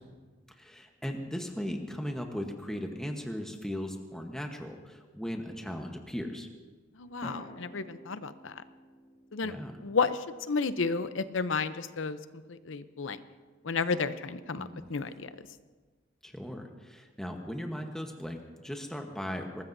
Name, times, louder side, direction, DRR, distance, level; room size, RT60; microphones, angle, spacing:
voice 1, 0.6-6.5 9.4-9.8 14.5-14.9 16.2-19.6, equal, 5° left, 2 dB, 1.1 m, -37 dB
voice 2, 7.0-8.6 9.3-9.5 9.8-12.2 12.5-13.2 13.6-15.3, left 4 dB, 85° left, 12 dB, 0.7 m, -32 dB
sound 1, 7.2-11.5, equal, 35° left, 1.7 m, -50 dB
22.5 x 19.0 x 2.7 m, 1.4 s
head